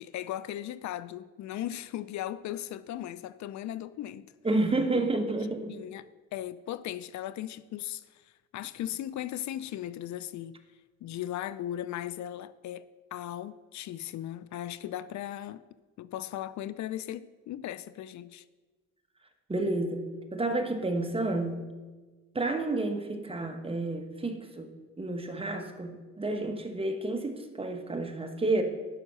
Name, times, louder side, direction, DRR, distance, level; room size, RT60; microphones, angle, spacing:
voice 1, 0.0-4.3 5.7-10.6 11.0-12.9 13.1-15.6 16.0-18.4, left 12 dB, 70° left, 0.5 m, -37 dB
voice 2, 4.4-5.7 19.5-21.6 22.3-24.7 25.0-28.6, right 2 dB, 20° right, 1.3 m, -30 dB
12.0 x 5.9 x 5.5 m
cardioid pair, 90°, 30 cm